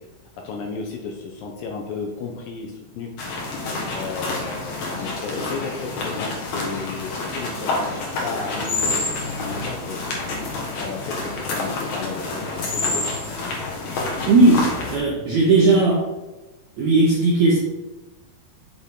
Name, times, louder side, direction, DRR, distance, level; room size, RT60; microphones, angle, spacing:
voice 1, 0.4-3.1 3.9-10.0 10.8-13.1, left 4 dB, 75° left, 1 dB, 2.2 m, -33 dB
sound 1, 3.2-15.0, left 3 dB, 55° left, 2.4 m, -28 dB
voice 2, 14.3-16.0 16.8-17.6, right 3 dB, 75° right, -3 dB, 1.7 m, -17 dB
6.7 x 6.5 x 3.7 m, 1.1 s
omnidirectional pair, 4.6 m